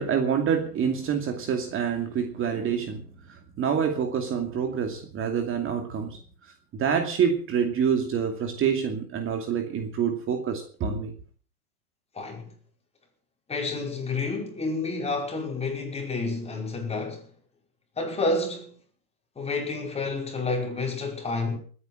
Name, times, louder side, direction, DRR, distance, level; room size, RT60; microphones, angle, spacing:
voice 1, 0.0-3.0 3.3-11.1, right 7 dB, 30° right, 2.5 m, -27 dB
voice 2, 12.1-12.5 13.5-17.3 18.0-18.8 19.4-21.6, left 3 dB, 15° left, 5.6 m, -29 dB
20.0 x 9.9 x 6.2 m
hypercardioid pair, 130°, 45 cm